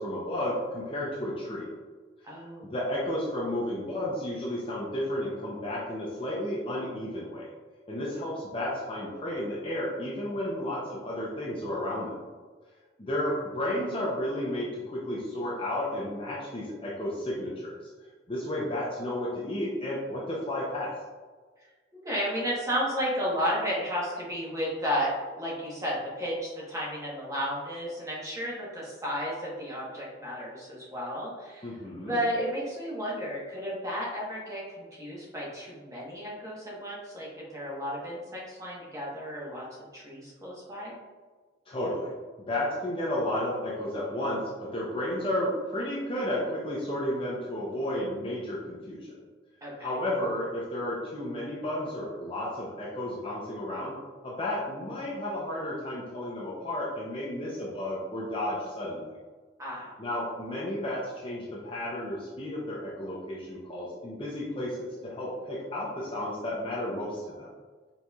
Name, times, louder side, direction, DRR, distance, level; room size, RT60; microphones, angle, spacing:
voice 1, 0.0-1.7 2.6-7.5 7.9-12.2 13.0-17.8 18.3-20.9 31.6-32.2 41.7-42.1 42.5-49.2 49.8-54.0 54.2-59.1 60.0-67.5, left 1 dB, 30° left, -4 dB, 0.6 m, -32 dB
voice 2, 2.2-2.7 21.6-31.8 32.0-39.6 39.9-41.0 49.6-49.9 59.6-59.9, equal, 15° right, -6 dB, 1.0 m, -33 dB
4.6 x 4.0 x 2.3 m, 1.4 s
head